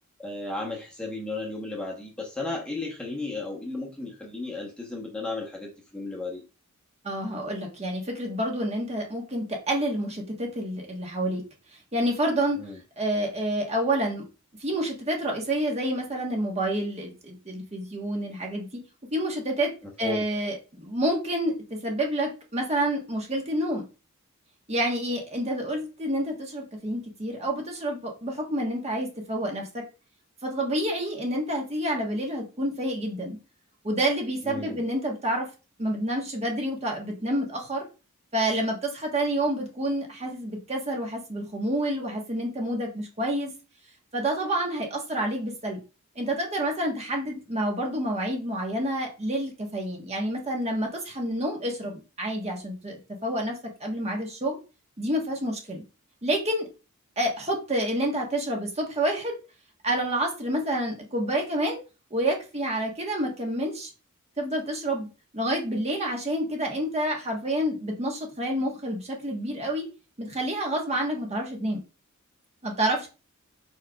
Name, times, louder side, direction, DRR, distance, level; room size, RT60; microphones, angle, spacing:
voice 1, 0.2-6.4 12.5-12.8 19.8-20.2 34.4-34.9, left 2 dB, 5° left, -2 dB, 0.9 m, -34 dB
voice 2, 7.0-11.4 11.9-12.6 13.0-14.2 14.6-18.7 19.1-19.7 20.0-23.8 24.7-29.8 30.4-33.4 33.8-35.5 35.8-37.9 38.3-43.5 44.1-45.8 46.1-54.6 55.0-55.8 56.2-56.7 57.2-59.4 59.8-61.8 62.1-63.9 64.4-65.1 65.3-69.9 70.2-71.8 72.6-73.1, right 1 dB, 30° right, 1 dB, 1.1 m, -28 dB
4.9 x 4.3 x 2.3 m, 0.31 s
head